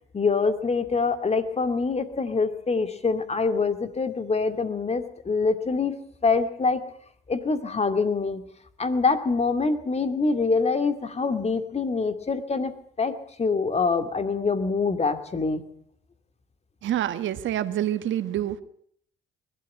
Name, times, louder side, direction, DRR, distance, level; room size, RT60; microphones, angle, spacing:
voice 1, 0.1-6.0 6.2-6.8 7.3-8.5 8.8-12.7 13.0-15.6, left 4 dB, 30° left, 2.5 m, -25 dB
voice 2, 16.8-18.6, right 11 dB, 75° right, 1.3 m, -27 dB
21.5 x 12.5 x 9.7 m
cardioid pair, 90°, 20 cm